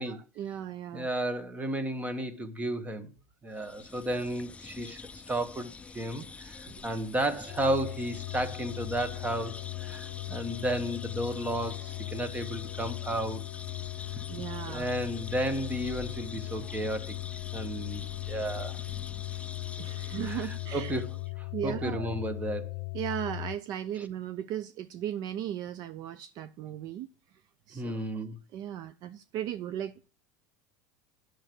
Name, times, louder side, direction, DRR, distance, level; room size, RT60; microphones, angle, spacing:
voice 1, 0.0-1.1 6.7-6.8 14.3-14.9 19.8-21.0 21.5-22.1 22.9-27.1 27.7-28.2 28.5-30.1, right 10 dB, 50° right, 0.5 m, -37 dB
voice 2, 0.9-3.1 3.4-5.0 5.3-13.4 14.7-17.1 17.5-18.8 20.2-22.7 27.7-28.4, right 1 dB, 15° right, 1.4 m, -33 dB
sound 1, 3.5-21.3, left 4 dB, 15° left, 0.4 m, -45 dB
sound 2, 7.5-23.6, left 25 dB, 65° left, 0.6 m, -38 dB
9.0 x 6.6 x 6.1 m
supercardioid pair, 110°, 9 cm